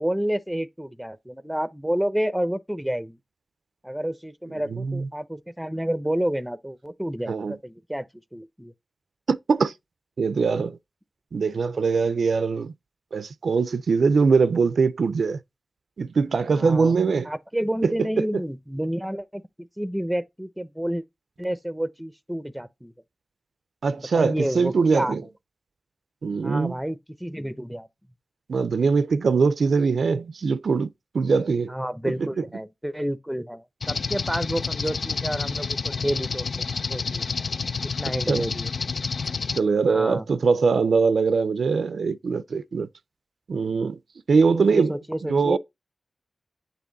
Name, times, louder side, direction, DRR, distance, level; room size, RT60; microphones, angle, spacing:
voice 1, 0.0-3.2 3.8-8.0 8.3-8.7 16.5-17.0 17.2-21.0 21.4-22.9 24.1-25.2 26.4-27.9 31.7-37.2 38.0-38.7 39.9-40.2 44.5-45.6, equal, 5° right, 0.7 m, -29 dB
voice 2, 4.7-5.1 7.3-7.6 9.3-9.7 10.2-10.8 11.3-12.7 13.1-15.4 16.0-17.3 17.8-18.2 23.8-25.2 26.2-26.8 28.5-31.7 32.1-32.3 38.3-38.4 39.5-42.9 43.5-44.0 44.3-44.9 45.3-45.6, right 5 dB, 85° right, 0.4 m, -22 dB
sound 1, 33.8-39.6, left 5 dB, 75° left, 0.4 m, -29 dB
8.4 x 3.3 x 4.0 m
wide cardioid pair, 85°, 0 cm